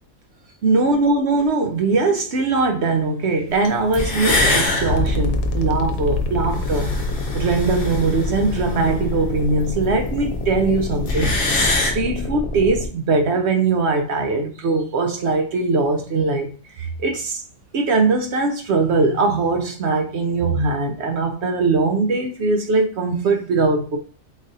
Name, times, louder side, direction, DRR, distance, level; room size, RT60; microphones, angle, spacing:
voice 1, 0.6-6.9 7.3-11.3 11.8-16.5 16.8-17.4 17.7-24.0, right 3 dB, 60° right, 0.8 m, -21 dB
sound 1, 3.6-3.7 3.9-9.9 10.2-10.3 10.5-10.6 10.8-11.9, left 2 dB, 45° left, 1.0 m, -24 dB
sound 2, 4.9-12.9, left 2 dB, 80° left, 1.1 m, -27 dB
4.0 x 2.5 x 3.9 m
omnidirectional pair, 1.4 m